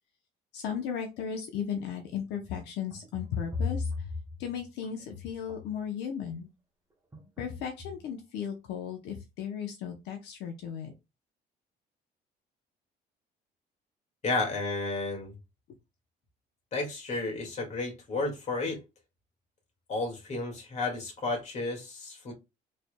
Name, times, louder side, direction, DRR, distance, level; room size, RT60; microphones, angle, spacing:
voice 1, 0.5-4.1 4.4-6.5 7.4-10.9, left 8 dB, 85° left, 0.8 m, -36 dB
sound 1, 2.2-5.8 7.1-7.5 7.8-8.2, left 4 dB, 15° right, 1.1 m, -38 dB
voice 2, 14.2-15.3 16.7-18.8 19.9-22.3, left 3 dB, 45° left, 1.9 m, -32 dB
4.2 x 3.3 x 2.2 m
cardioid pair, 110°, 17 cm